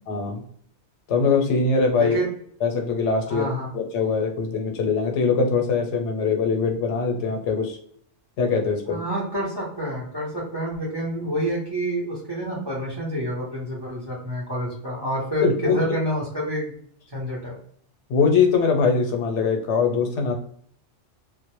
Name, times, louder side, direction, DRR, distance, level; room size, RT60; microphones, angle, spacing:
voice 1, 0.1-0.4 1.1-2.2 2.6-7.8 8.4-9.0 15.4-15.8 18.1-20.3, left 5 dB, 90° left, 3 dB, 0.9 m, -22 dB
voice 2, 2.0-2.3 3.3-3.7 8.9-16.7 17.1-17.6, equal, 30° right, -4 dB, 0.5 m, -28 dB
2.1 x 2.0 x 2.9 m, 0.62 s
omnidirectional pair, 1.2 m